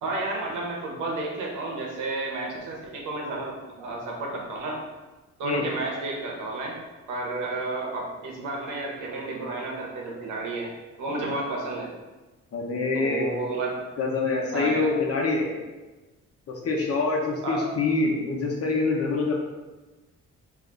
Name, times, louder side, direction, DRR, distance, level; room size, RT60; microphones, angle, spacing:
voice 1, 0.0-4.8 5.4-6.8 7.1-10.7 11.0-11.9 12.9-13.8 14.5-14.9 17.4-17.7, right 2 dB, 85° right, -1 dB, 1.0 m, -31 dB
voice 2, 12.5-13.3 14.0-15.6 16.5-19.4, left 3 dB, 50° left, 0 dB, 0.9 m, -25 dB
3.3 x 2.7 x 3.9 m, 1.2 s
cardioid pair, 90°, 30 cm